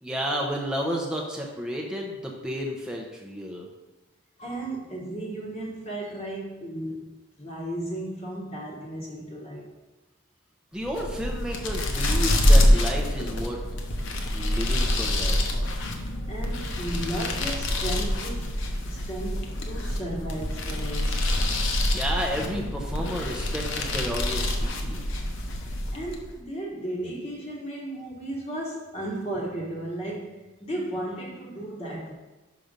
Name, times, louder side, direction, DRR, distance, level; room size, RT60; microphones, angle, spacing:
voice 1, 0.0-3.7 10.7-13.6 14.3-15.4 21.9-25.1, equal, 5° right, -1 dB, 0.6 m, -32 dB
voice 2, 4.4-9.7 16.3-21.2 25.9-32.1, right 1 dB, 30° left, -4 dB, 1.1 m, -35 dB
sound 1, 10.8-26.3, left 1 dB, 60° left, 0.9 m, -26 dB
5.9 x 5.2 x 5.2 m, 1.2 s
head